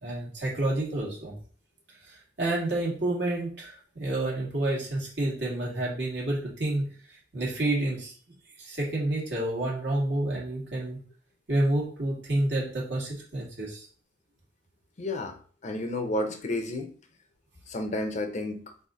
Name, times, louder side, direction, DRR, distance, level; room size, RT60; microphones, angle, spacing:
voice 1, 0.0-1.3 2.1-6.9 7.3-8.1 8.6-11.0 11.5-13.9, right 1 dB, 70° right, -4 dB, 2.0 m, -29 dB
voice 2, 15.0-15.4 15.6-16.9 17.7-18.7, left 1 dB, 40° left, 7 dB, 0.7 m, -31 dB
4.1 x 2.6 x 4.8 m, 0.42 s
head